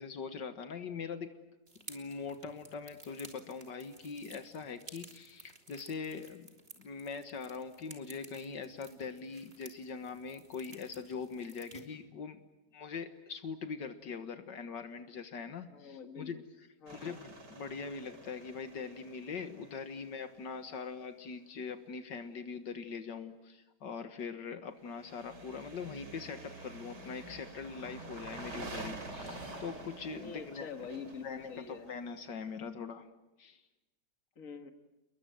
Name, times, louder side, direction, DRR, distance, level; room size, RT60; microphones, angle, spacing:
voice 1, 0.0-1.3 1.9-12.4 12.7-16.4 16.9-30.7 31.2-33.1 33.4-33.6, left 5 dB, 75° left, 9 dB, 2.1 m, -42 dB
sound 1, 1.7-11.8, right 2 dB, 35° right, 3.1 m, -55 dB
voice 2, 15.7-16.4 16.8-17.2 30.1-31.9 34.4-34.7, left 5 dB, 50° left, 7 dB, 2.1 m, -45 dB
sound 2, 16.9-20.7 24.9-32.5, right 2 dB, 70° right, 4.3 m, -48 dB
29.5 x 22.0 x 9.2 m, 1.0 s
omnidirectional pair, 1.9 m